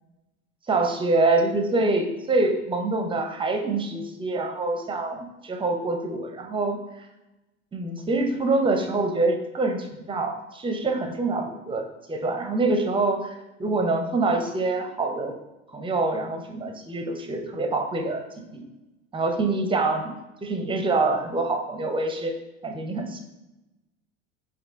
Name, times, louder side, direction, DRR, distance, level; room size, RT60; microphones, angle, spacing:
voice 1, 0.7-6.8 7.7-13.3 13.6-15.3 15.7-18.6 19.1-20.1 20.4-22.3 22.6-23.2, right 3 dB, 15° right, 4 dB, 0.5 m, -25 dB
4.2 x 2.6 x 3.5 m, 0.98 s
hypercardioid pair, 90°, 38 cm